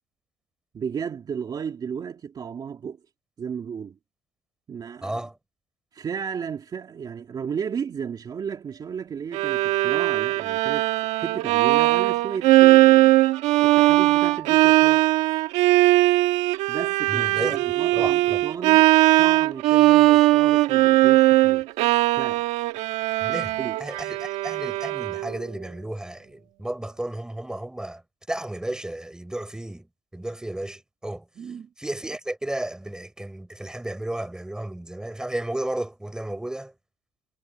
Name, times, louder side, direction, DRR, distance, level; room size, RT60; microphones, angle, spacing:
voice 1, 0.7-3.0 3.4-4.0 4.7-5.2 5.9-10.9 11.2-13.1 13.6-15.1 16.7-18.9 19.2-21.7 22.1-22.5 23.6-23.8 31.4-31.7, right 7 dB, 35° right, 2.7 m, -34 dB
voice 2, 5.0-5.4 17.1-17.6 17.9-18.4 23.2-28.0 28.3-29.9 30.1-31.2 31.8-36.7, right 1 dB, 5° right, 3.9 m, -33 dB
Bowed string instrument, 9.3-25.4, right 17 dB, 75° right, 1.3 m, -19 dB
cardioid pair, 110°, 12 cm